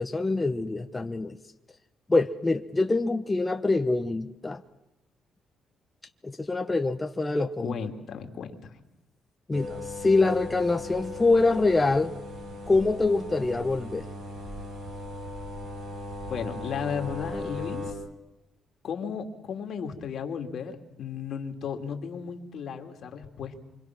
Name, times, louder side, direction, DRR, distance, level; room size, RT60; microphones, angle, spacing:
voice 1, 0.0-1.4 2.1-4.6 6.2-7.7 9.5-12.1 12.7-14.1, left 3 dB, 20° left, 5 dB, 1.1 m, -25 dB
voice 2, 7.6-8.7 16.3-17.9 18.8-23.6, left 6 dB, 65° left, 4 dB, 2.6 m, -35 dB
sound 1, 9.5-17.9, left 2 dB, 80° right, 7.6 m, -38 dB
27.0 x 25.0 x 6.1 m, 0.94 s
cardioid pair, 90°, 0 cm